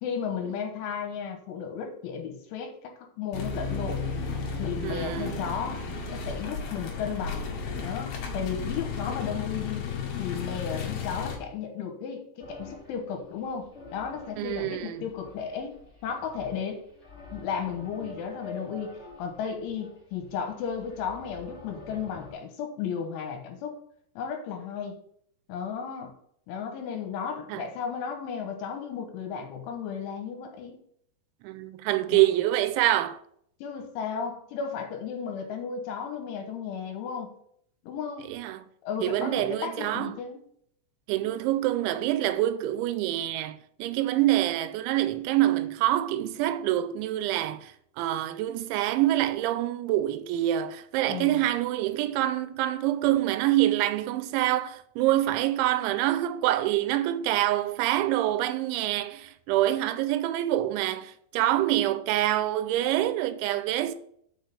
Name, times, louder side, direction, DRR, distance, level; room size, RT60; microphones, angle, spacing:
voice 1, 0.0-4.0 4.6-5.8 6.1-7.5 7.8-9.8 10.2-16.8 17.3-23.8 24.2-25.0 25.5-26.1 26.5-30.8 32.1-32.2 33.6-37.4 37.8-38.3 38.8-40.4 51.1-51.4, left 7 dB, 80° left, 3.4 m, -34 dB
sound 1, 3.3-11.4, left 5 dB, 60° left, 2.9 m, -33 dB
voice 2, 4.8-5.4 14.4-15.0 27.5-27.6 31.4-33.2 38.3-38.6 39.0-40.1 41.1-47.7 48.0-64.0, right 14 dB, 80° right, 2.9 m, -26 dB
sound 2, 12.4-22.3, left 2 dB, 15° left, 2.8 m, -47 dB
6.4 x 6.4 x 6.8 m
omnidirectional pair, 5.6 m